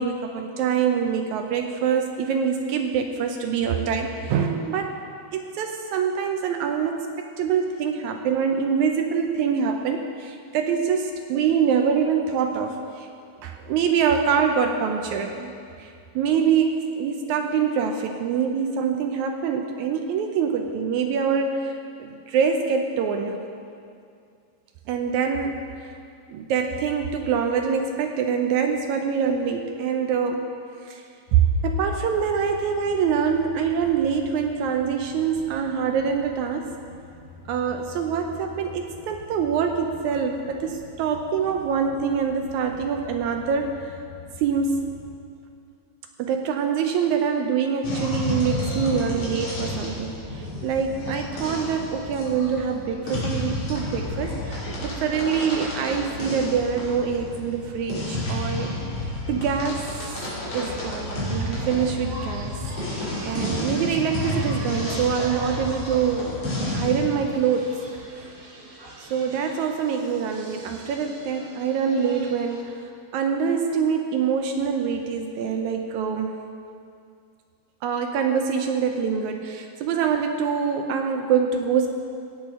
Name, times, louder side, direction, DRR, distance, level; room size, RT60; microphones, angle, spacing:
voice 1, 0.0-5.0 5.3-13.1 13.4-15.5 15.8-23.4 24.9-25.8 26.3-30.5 30.8-31.0 31.3-36.7 37.5-43.7 44.4-44.9 46.2-58.7 59.3-59.8 60.5-62.6 62.9-66.4 66.7-67.8 69.0-72.8 73.1-76.3 77.8-81.9, right 6 dB, 80° right, 4 dB, 1.8 m, -25 dB
sound 1, 31.3-45.2, left 5 dB, 80° left, 2.5 m, -45 dB
sound 2, 47.8-67.0, left 1 dB, 50° left, 3.4 m, -31 dB
sound 3, 61.4-72.6, right 2 dB, 55° right, 1.1 m, -42 dB
15.5 x 8.8 x 3.6 m, 2.4 s
omnidirectional pair, 3.8 m